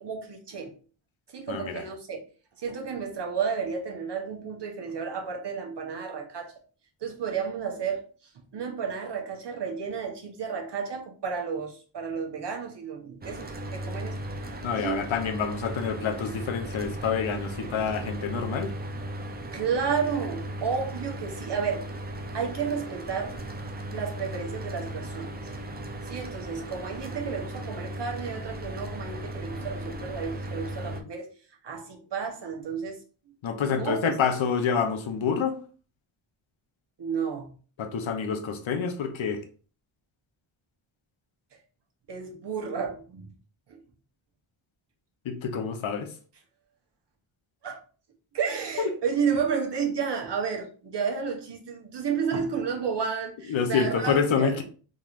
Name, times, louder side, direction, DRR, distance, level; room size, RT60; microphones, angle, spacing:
voice 1, 0.0-0.7 1.3-2.2 2.6-6.5 7.0-8.0 8.3-14.2 14.7-15.1 19.5-21.9 22.3-23.4 23.9-25.4 26.0-31.3 31.6-33.0 33.7-34.2 37.0-37.5 42.1-43.3 43.7-43.8 47.6-47.8 48.3-54.6, right 6 dB, 55° right, 1.0 m, -31 dB
voice 2, 1.5-1.8 14.6-18.7 33.4-35.6 37.8-39.4 45.2-46.1 48.8-48.9 53.5-54.6, left 6 dB, 70° left, 0.8 m, -27 dB
Mechanical fan, 13.2-31.0, right 1 dB, 20° right, 0.4 m, -37 dB
3.8 x 3.1 x 2.5 m
wide cardioid pair, 125°, 50 cm